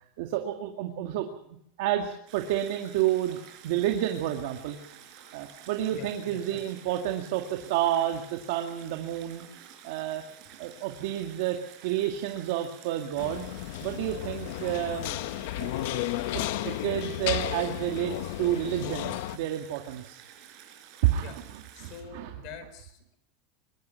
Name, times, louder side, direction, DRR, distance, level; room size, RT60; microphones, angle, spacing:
voice 1, 0.2-1.3 1.8-4.8 5.3-10.2 10.6-13.5 13.8-15.2 15.6-16.0 16.3-20.2 21.0-22.4, right 12 dB, 60° right, 3 dB, 2.1 m, -30 dB
sound 1, 2.3-22.0, right 10 dB, 40° right, 4.9 m, -51 dB
voice 2, 5.9-6.6 21.2-21.4 21.7-23.2, left 7 dB, 40° left, 11 dB, 4.6 m, -45 dB
sound 2, 13.2-19.4, left 15 dB, 60° left, 0.9 m, -33 dB
23.5 x 22.5 x 5.7 m, 0.74 s
supercardioid pair, 175°, 0 cm